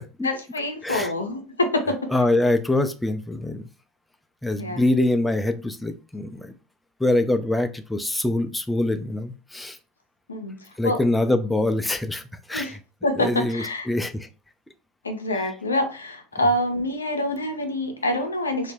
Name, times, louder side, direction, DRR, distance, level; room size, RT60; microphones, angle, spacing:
voice 1, 0.2-2.0 4.6-4.8 10.3-11.0 12.5-12.8 13.0-13.9 15.0-18.7, left 1 dB, 90° left, 6 dB, 0.4 m, -26 dB
voice 2, 2.1-3.6 4.4-6.5 7.0-9.8 10.8-12.2 12.5-12.8 13.2-14.3, left 1 dB, 5° left, 8 dB, 0.3 m, -24 dB
2.2 x 2.0 x 3.2 m, 0.34 s
hypercardioid pair, 75°, 0 cm